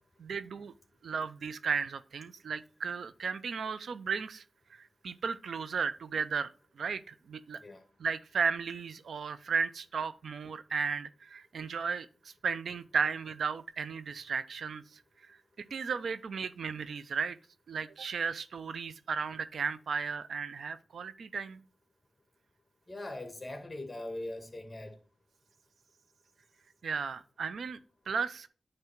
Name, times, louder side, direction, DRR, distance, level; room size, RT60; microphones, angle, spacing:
voice 1, 0.2-0.7 1.0-4.4 4.7-6.5 6.8-7.6 8.0-15.0 15.3-15.4 15.7-17.4 17.7-21.6 26.8-27.8 28.1-28.5, right 5 dB, 85° right, 0.4 m, -35 dB
voice 2, 22.9-24.9, left 1 dB, 20° left, 1.6 m, -41 dB
9.3 x 3.3 x 4.4 m
wide cardioid pair, 105°, 0 cm